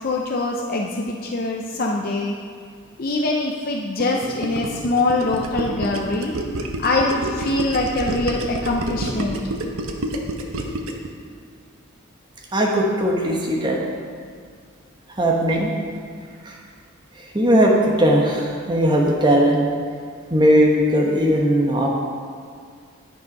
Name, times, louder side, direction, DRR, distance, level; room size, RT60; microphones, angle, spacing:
voice 1, 0.0-2.4 3.0-6.3 6.8-9.4, left 2 dB, 45° left, -1 dB, 0.6 m, -23 dB
Gurgling, 4.0-11.1, right 1 dB, 80° right, 1.0 m, -28 dB
voice 2, 12.5-13.8 15.2-15.7 16.4-16.6 17.2-19.7 20.3-21.9, equal, 20° right, -1 dB, 1.1 m, -18 dB
10.5 x 6.9 x 5.4 m, 2.1 s
head